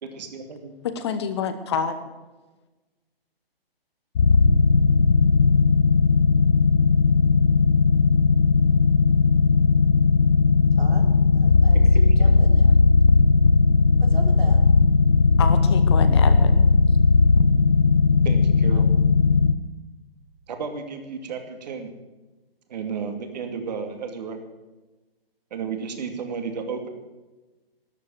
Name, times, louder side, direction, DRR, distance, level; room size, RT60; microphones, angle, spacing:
voice 1, 0.0-0.7 12.2-12.3 18.2-18.9 20.5-21.9 22.7-24.4 25.5-26.9, right 5 dB, 45° right, 6 dB, 2.5 m, -33 dB
voice 2, 0.8-2.0 15.4-16.7, left 6 dB, 25° left, 10 dB, 1.0 m, -28 dB
sound 1, 4.2-19.5, left 4 dB, 50° left, 1.2 m, -17 dB
voice 3, 10.8-12.8 14.0-14.6, right 4 dB, 80° right, 3 dB, 4.2 m, -39 dB
13.5 x 12.0 x 7.5 m, 1.2 s
hypercardioid pair, 155°, 30 cm